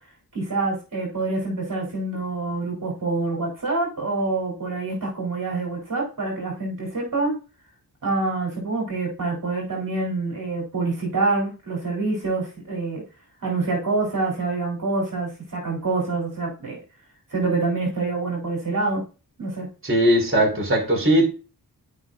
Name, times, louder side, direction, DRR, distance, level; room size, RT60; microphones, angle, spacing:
voice 1, 0.3-7.3 8.0-13.0 13.4-16.8 17.3-19.0 19.4-19.7, right 3 dB, 60° right, 3.6 m, -26 dB
voice 2, 19.8-21.3, right 1 dB, 35° right, 3.9 m, -19 dB
12.5 x 5.5 x 2.5 m
cardioid pair, 60°, 37 cm